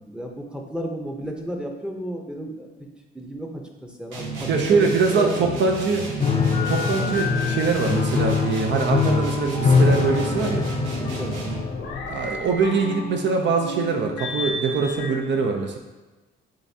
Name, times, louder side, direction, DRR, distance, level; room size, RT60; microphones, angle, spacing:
voice 1, 0.1-2.9 3.1-5.6 11.0-11.5, equal, 5° right, 1 dB, 0.7 m, -33 dB
sound 1, 4.1-11.8, right 2 dB, 85° right, 1.1 m, -32 dB
voice 2, 4.5-6.1 6.7-10.7 12.1-15.8, right 4 dB, 65° right, 3 dB, 0.6 m, -23 dB
Piano, 6.2-12.1, left 5 dB, 35° left, 0.5 m, -23 dB
sound 2, 6.5-15.2, left 3 dB, 90° left, 0.7 m, -33 dB
7.6 x 2.5 x 2.7 m, 1.2 s
cardioid pair, 90°, 20 cm